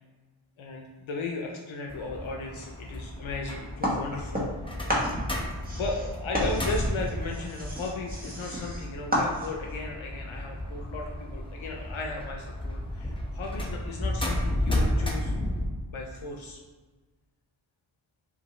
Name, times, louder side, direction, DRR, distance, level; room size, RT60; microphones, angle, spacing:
voice 1, 0.6-4.5 5.7-15.3 15.9-16.6, left 3 dB, 80° left, 1 dB, 0.6 m, -36 dB
sound 1, 1.9-15.7, left 1 dB, 10° left, 0.7 m, -33 dB
sound 2, 3.8-4.6 4.9-9.7, equal, 20° right, 1.1 m, -31 dB
5.3 x 2.6 x 3.1 m, 1.4 s
wide cardioid pair, 75°, 47 cm